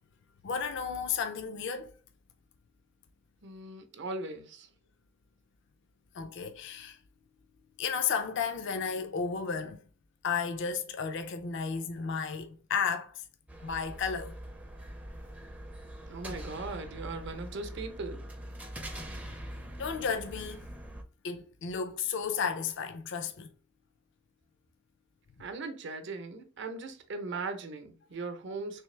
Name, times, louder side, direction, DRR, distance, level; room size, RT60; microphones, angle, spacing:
voice 1, 0.4-1.9 6.1-7.0 7.8-9.8 10.2-13.2 13.6-14.3 19.2-19.4 19.8-20.7 21.2-23.5, left 6 dB, 60° left, 0.4 m, -33 dB
voice 2, 3.4-4.7 16.0-18.2 25.4-28.8, right 3 dB, 60° right, 0.7 m, -39 dB
sound 1, 13.5-21.0, right 1 dB, 5° right, 0.4 m, -43 dB
3.3 x 3.2 x 3.2 m
head